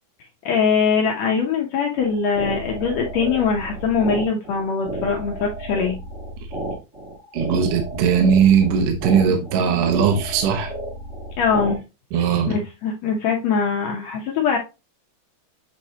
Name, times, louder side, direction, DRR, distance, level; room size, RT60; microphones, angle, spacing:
voice 1, 0.4-5.9 11.4-11.8 12.5-14.6, left 5 dB, 85° left, 1.5 m, -22 dB
sound 1, 2.0-11.8, right 1 dB, 50° right, 0.8 m, -32 dB
voice 2, 7.3-10.7 12.1-12.5, right 7 dB, 75° right, 2.2 m, -19 dB
8.2 x 4.2 x 2.8 m
omnidirectional pair, 4.3 m